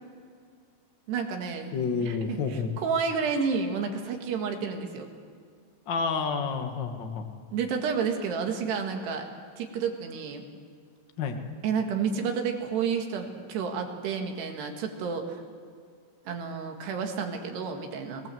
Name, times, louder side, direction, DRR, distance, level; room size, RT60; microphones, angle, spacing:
voice 1, 1.1-2.4 2.8-5.1 7.5-9.3 9.6-10.5 11.6-15.4 16.3-18.2, right 6 dB, 75° right, 3 dB, 3.9 m, -30 dB
voice 2, 1.7-2.7 5.9-7.3 11.2-11.4, left 5 dB, 55° left, 4 dB, 1.3 m, -29 dB
23.0 x 19.0 x 7.8 m, 2.2 s
omnidirectional pair, 4.8 m